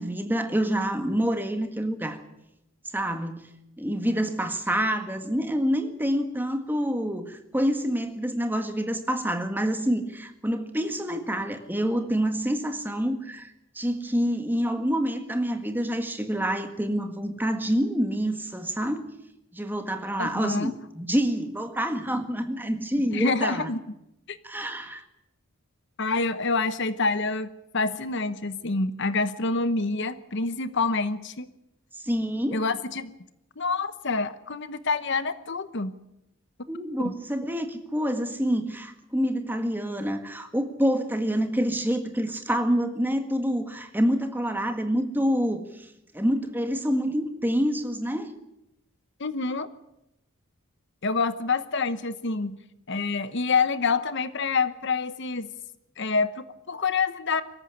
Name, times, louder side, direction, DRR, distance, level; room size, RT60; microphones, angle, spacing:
voice 1, 0.0-2.2 2.9-3.5 3.8-19.0 19.5-23.7 24.4-25.0 31.9-32.6 36.7-45.9 46.1-48.3, equal, 10° right, 7 dB, 1.7 m, -27 dB
voice 2, 20.2-20.7 23.1-23.8 24.3-24.4 26.0-31.5 32.5-33.1 33.6-35.9 37.0-37.1 49.2-49.7 51.0-52.6 52.9-55.5 56.0-57.4, left 4 dB, 55° left, 13 dB, 1.0 m, -27 dB
24.0 x 14.0 x 9.8 m, 0.86 s
head